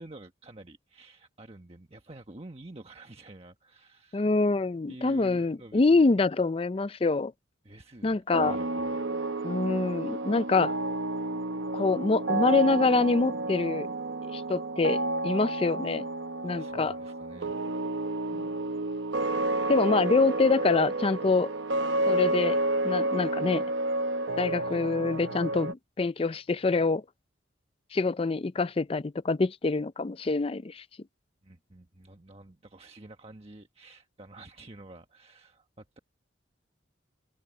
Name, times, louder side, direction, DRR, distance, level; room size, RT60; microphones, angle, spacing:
voice 1, 0.0-4.3 4.9-6.1 7.6-9.1 16.4-17.6 19.3-19.5 24.6-24.8 31.4-36.0, right 2 dB, 35° right, 1.3 m, -49 dB
voice 2, 4.1-7.3 8.0-8.6 9.4-10.7 11.7-13.9 14.3-15.0 15.2-16.1 16.4-17.0 18.3-18.4 19.7-21.5 22.1-22.6 22.8-23.6 24.4-27.0 27.9-30.8, left 3 dB, 30° left, 0.4 m, -25 dB
sound 1, 8.3-25.7, right 2 dB, 80° right, 0.9 m, -30 dB
open air
head